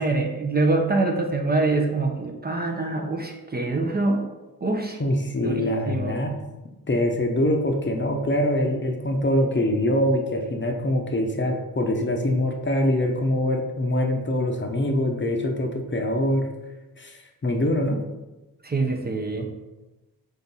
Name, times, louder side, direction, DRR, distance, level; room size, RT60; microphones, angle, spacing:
voice 1, 0.0-4.2 4.6-5.0 5.4-6.2 18.6-19.5, right 3 dB, 25° right, 2 dB, 0.5 m, -25 dB
voice 2, 5.0-6.3 6.9-16.5 17.0-18.0, left 1 dB, 30° left, 2 dB, 0.7 m, -24 dB
3.8 x 3.5 x 4.0 m, 1.1 s
cardioid pair, 70°, 37 cm